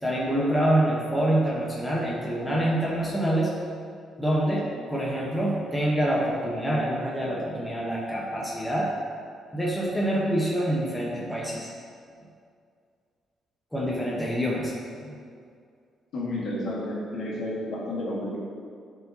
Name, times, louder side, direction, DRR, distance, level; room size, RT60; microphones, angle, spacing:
voice 1, 0.0-3.5 4.2-4.6 4.9-8.9 9.5-11.7 13.7-14.7 15.0-15.1, right 1 dB, 5° left, -5 dB, 1.0 m, -26 dB
voice 2, 16.1-18.4, left 1 dB, 65° left, -5 dB, 1.8 m, -31 dB
11.5 x 4.7 x 2.8 m, 2.2 s
cardioid pair, 140°, 0 cm